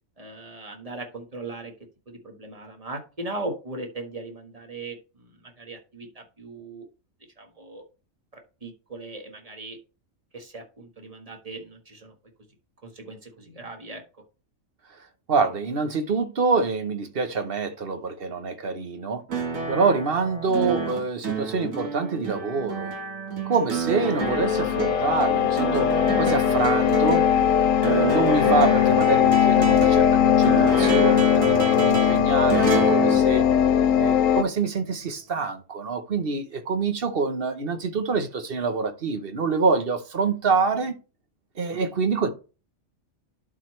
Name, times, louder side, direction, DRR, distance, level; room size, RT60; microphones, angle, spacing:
voice 1, 0.2-1.7 2.1-6.8 7.4-7.8 8.3-9.8 10.3-12.1 12.8-14.0, right 2 dB, 30° right, 1.5 m, -38 dB
voice 2, 15.3-19.2 19.7-22.9 23.4-25.9 26.2-27.3 27.8-33.4 33.9-40.9 41.6-42.3, right 4 dB, 50° right, 1.1 m, -26 dB
sound 1, 19.3-34.2 35.5-35.6, right 4 dB, 75° right, 1.9 m, -30 dB
sound 2, 24.2-34.4, left 9 dB, 80° left, 1.0 m, -20 dB
11.5 x 4.6 x 3.1 m
omnidirectional pair, 1.4 m